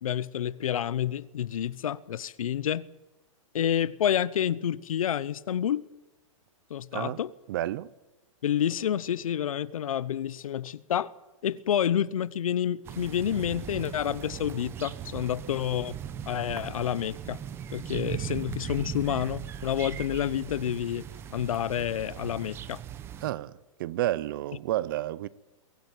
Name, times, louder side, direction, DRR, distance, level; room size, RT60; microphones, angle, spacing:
voice 1, 0.0-2.9 3.5-5.9 6.7-7.3 8.4-11.1 11.4-16.0 16.3-17.4 17.7-21.0 21.3-22.8, left 10 dB, 90° left, 0.9 m, -29 dB
voice 2, 7.5-7.9 23.2-23.5 23.8-25.3, right 14 dB, 40° right, 0.7 m, -30 dB
sound 1, 12.8-23.3, right 9 dB, 15° right, 0.8 m, -39 dB
23.0 x 16.5 x 9.1 m
hypercardioid pair, 165°, 17 cm